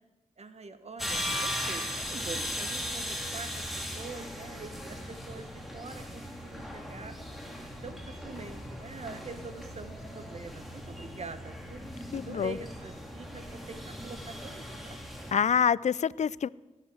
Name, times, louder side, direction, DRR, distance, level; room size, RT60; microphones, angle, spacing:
voice 1, 0.4-3.5 4.0-7.1 7.8-11.8 12.1-15.0, right 4 dB, 55° right, 10 dB, 1.4 m, -44 dB
sound 1, 1.0-15.3, equal, ahead, 2.7 m, -38 dB
sound 2, 1.8-13.4 13.8-13.9, equal, 75° right, 5.2 m, -53 dB
voice 2, 12.1-12.5 15.3-16.5, left 7 dB, 60° left, 21 dB, 0.4 m, -26 dB
19.0 x 8.2 x 7.9 m, 1.1 s
cardioid pair, 50°, 13 cm